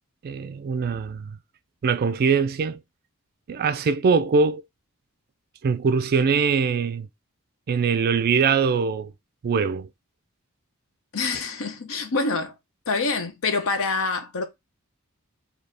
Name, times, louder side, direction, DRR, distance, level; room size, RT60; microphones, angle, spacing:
voice 1, 0.2-1.4 1.8-2.8 3.5-4.6 5.6-7.1 7.7-9.1 9.4-9.9, right 5 dB, 45° right, 0.3 m, -22 dB
voice 2, 11.1-12.5 12.9-14.5, left 4 dB, 65° left, 0.7 m, -26 dB
4.0 x 2.8 x 3.3 m
head